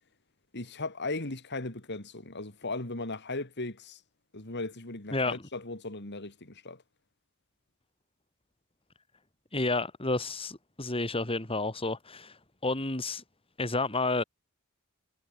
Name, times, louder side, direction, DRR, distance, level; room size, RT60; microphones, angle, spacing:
voice 1, 0.5-4.0 4.3-6.8, left 2 dB, 50° left, 3.1 m, -37 dB
voice 2, 5.1-5.4 9.5-12.4 12.6-13.2 13.6-14.2, left 2 dB, 25° left, 3.4 m, -30 dB
head